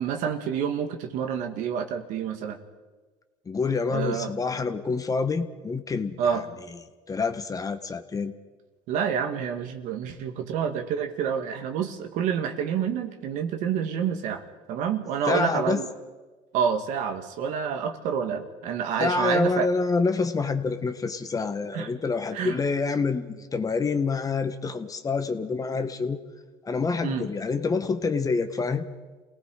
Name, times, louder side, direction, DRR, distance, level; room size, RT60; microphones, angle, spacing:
voice 1, 0.0-2.6 3.9-4.3 6.2-6.4 8.9-14.4 14.7-15.9 16.5-19.7 21.7-21.9 22.3-22.6 27.0-27.3, right 7 dB, 70° right, 5 dB, 2.2 m, -28 dB
voice 2, 3.4-6.4 7.1-8.3 15.3-15.8 19.0-26.2 26.6-28.9, left 4 dB, 25° left, 8 dB, 1.6 m, -27 dB
28.5 x 18.5 x 5.0 m, 1.3 s
supercardioid pair, 100°, 13 cm